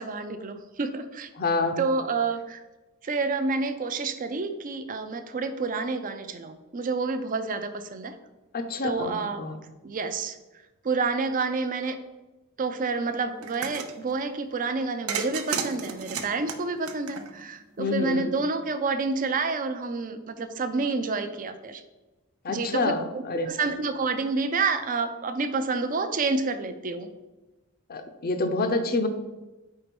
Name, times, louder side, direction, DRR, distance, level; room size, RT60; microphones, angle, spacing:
voice 1, 0.0-1.3 1.8-2.6 3.0-8.1 8.8-9.4 9.8-10.4 10.8-12.0 12.6-21.8 22.5-27.1, right 4 dB, 40° right, 9 dB, 0.5 m, -29 dB
voice 2, 1.4-1.7 8.5-9.6 17.8-18.3 22.4-23.5 27.9-29.1, left 3 dB, 45° left, 8 dB, 0.6 m, -27 dB
sound 1, 13.4-13.9 15.1-17.6, right 5 dB, 80° right, 0.6 m, -32 dB
4.5 x 4.0 x 5.2 m, 1.1 s
head